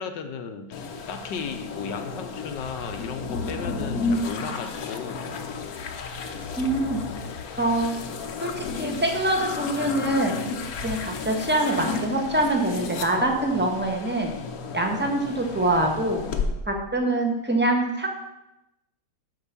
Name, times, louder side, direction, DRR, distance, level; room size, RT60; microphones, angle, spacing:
voice 1, 0.0-5.2, left 5 dB, 75° left, 7 dB, 1.5 m, -35 dB
sound 1, 0.7-16.5, left 4 dB, 60° left, 1.2 m, -33 dB
voice 2, 6.6-7.0 7.6-8.0 8.4-10.3 10.8-14.3 14.7-16.2 16.7-18.1, right 1 dB, 5° right, 2 dB, 1.0 m, -24 dB
8.1 x 6.0 x 7.0 m, 0.90 s
omnidirectional pair, 2.0 m